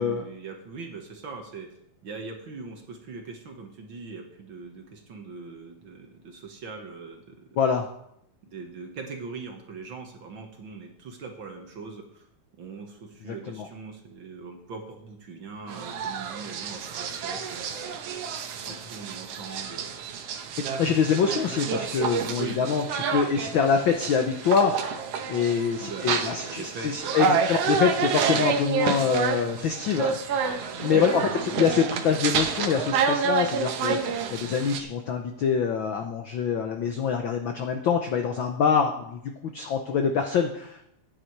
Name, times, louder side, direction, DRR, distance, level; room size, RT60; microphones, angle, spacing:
voice 1, 0.0-1.7 2.0-7.6 8.5-12.3 12.6-18.3 18.6-20.0 22.4-22.6 25.8-27.8 30.8-31.2, right 4 dB, 50° right, 3 dB, 1.8 m, -40 dB
voice 2, 7.6-7.9 13.3-13.7 18.7-18.8 20.8-25.0 25.3-31.2 31.6-40.8, left 6 dB, 85° left, 5 dB, 1.0 m, -25 dB
sound 1, 15.7-34.8, right 6 dB, 65° right, 1.9 m, -29 dB
13.0 x 9.6 x 4.7 m, 0.75 s
omnidirectional pair, 3.3 m